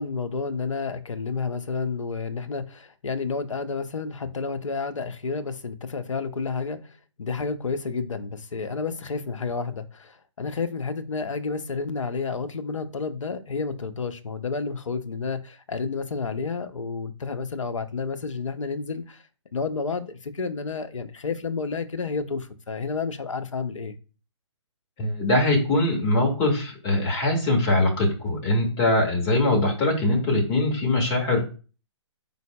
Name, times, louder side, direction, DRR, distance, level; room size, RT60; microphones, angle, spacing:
voice 1, 0.0-19.2 19.5-24.0, left 4 dB, 85° left, 0.6 m, -30 dB
voice 2, 25.0-31.4, left 2 dB, 25° left, 1.6 m, -22 dB
4.7 x 3.9 x 2.2 m
figure-of-eight pair, 135°, 16 cm